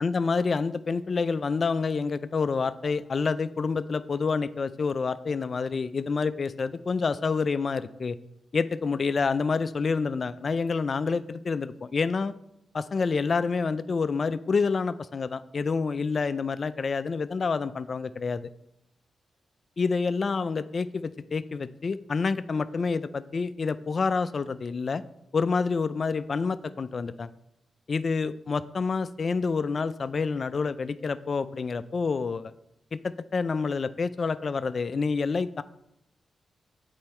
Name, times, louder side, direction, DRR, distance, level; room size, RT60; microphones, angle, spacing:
voice 1, 0.0-8.2 8.5-12.3 12.7-18.5 19.8-25.0 25.3-27.3 27.9-32.5 32.9-35.6, left 4 dB, 50° left, 14 dB, 0.3 m, -28 dB
7.8 x 4.5 x 4.3 m, 0.80 s
cardioid pair, 70°, 0 cm